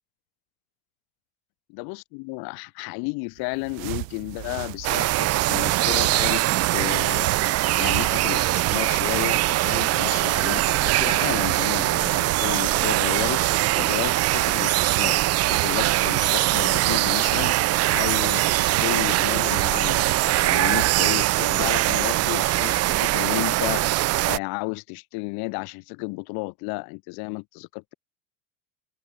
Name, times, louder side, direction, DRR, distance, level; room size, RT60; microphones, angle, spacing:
voice 1, 1.7-6.4 6.7-27.9, left 31 dB, 60° left, 1.9 m, -32 dB
sound 1, 3.4-22.1, right 37 dB, 70° right, 2.6 m, -36 dB
sound 2, 4.8-24.4, right 17 dB, 35° right, 0.7 m, -22 dB
supercardioid pair, 140°, 42 cm